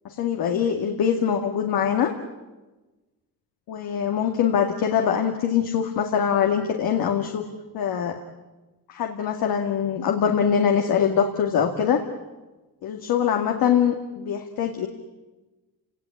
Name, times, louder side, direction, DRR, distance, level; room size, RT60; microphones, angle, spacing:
voice 1, 0.0-2.1 3.7-7.5 7.7-8.2 8.9-12.0 12.8-14.9, left 8 dB, 90° left, 3 dB, 2.2 m, -23 dB
30.0 x 19.0 x 9.9 m, 1.1 s
cardioid pair, 90°, 35 cm